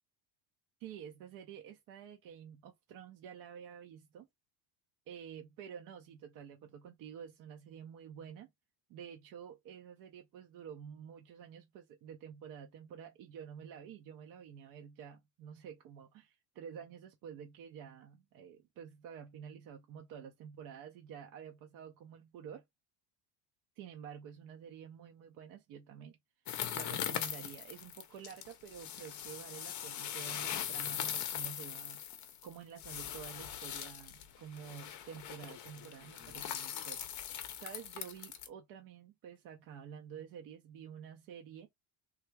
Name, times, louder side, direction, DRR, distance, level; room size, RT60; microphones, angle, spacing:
voice 1, 0.8-4.3 5.1-8.5 8.9-22.6 23.8-26.2 26.7-32.0 32.4-41.7, right 8 dB, 45° right, 0.5 m, -50 dB
sound 1, 26.5-38.5, left 10 dB, 35° left, 0.6 m, -41 dB
3.4 x 2.3 x 4.4 m
cardioid pair, 165°, 49 cm